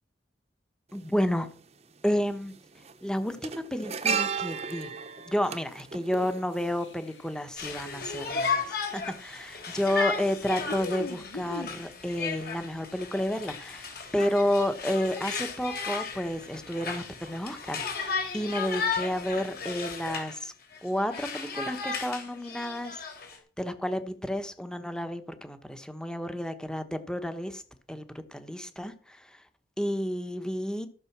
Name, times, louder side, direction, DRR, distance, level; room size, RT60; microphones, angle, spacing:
voice 1, 0.9-1.5 2.0-2.5 3.0-5.0 5.3-13.9 14.1-20.5 20.8-23.0 23.6-27.6 27.9-29.4 29.8-30.9, left 1 dB, 5° left, 9 dB, 1.1 m, -31 dB
sound 1, 0.9-1.0 2.2-2.5 2.8-7.1 7.4-7.5, right 6 dB, 35° right, 1.0 m, -33 dB
sound 2, 6.6-8.7 10.7-11.9, left 3 dB, 90° left, 0.9 m, -41 dB
Conversation, 7.6-20.4 20.7-23.4, left 5 dB, 60° left, 3.5 m, -35 dB
14.5 x 6.9 x 6.0 m, 0.43 s
head